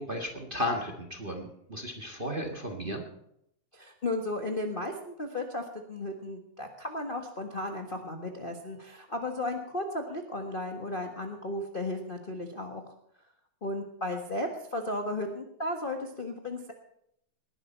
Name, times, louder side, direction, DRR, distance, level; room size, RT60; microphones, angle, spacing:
voice 1, 0.0-3.1, left 1 dB, 25° right, 3 dB, 1.2 m, -34 dB
voice 2, 3.7-12.8 13.6-16.7, left 1 dB, 40° left, 2 dB, 0.7 m, -35 dB
20.0 x 11.5 x 4.4 m, 0.76 s
omnidirectional pair, 3.4 m